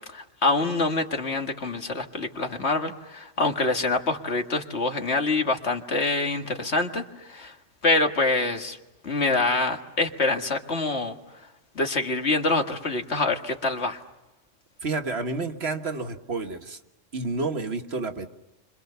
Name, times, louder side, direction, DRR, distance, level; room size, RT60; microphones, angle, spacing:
voice 1, 0.1-7.6 7.8-8.8 9.0-11.2 11.8-14.0, left 3 dB, 65° left, 5 dB, 2.1 m, -25 dB
voice 2, 14.8-16.8 17.1-18.3, right 3 dB, 60° right, 6 dB, 1.8 m, -30 dB
30.0 x 25.5 x 6.9 m, 0.95 s
omnidirectional pair, 1.2 m